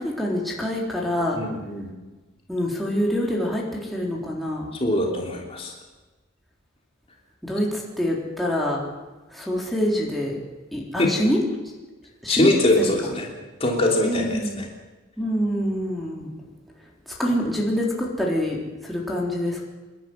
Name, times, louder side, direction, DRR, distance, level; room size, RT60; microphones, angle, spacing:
voice 1, 0.0-1.4 2.5-4.7 7.4-8.8 9.3-10.4 10.7-11.4 12.2-12.8 14.0-14.6 15.2-16.3 17.1-19.7, equal, ahead, -3 dB, 3.8 m, -26 dB
voice 2, 1.3-1.9 4.7-5.7 11.0-11.1 12.3-13.3 13.6-14.7, left 1 dB, 30° left, -1 dB, 3.2 m, -22 dB
27.0 x 11.5 x 9.7 m, 1.2 s
head